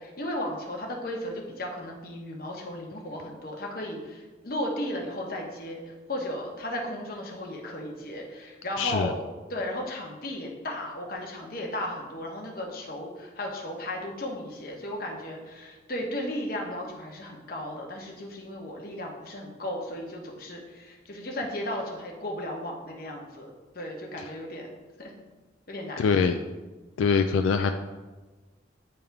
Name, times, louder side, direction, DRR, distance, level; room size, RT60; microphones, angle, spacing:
voice 1, 0.0-9.2 9.5-23.5 23.7-24.7 25.0-25.2 25.7-26.1, left 1 dB, 50° left, 0 dB, 1.0 m, -35 dB
voice 2, 8.8-9.1 26.0-26.4 27.0-27.7, left 5 dB, 85° left, 7 dB, 0.3 m, -23 dB
8.9 x 3.4 x 3.4 m, 1.3 s
head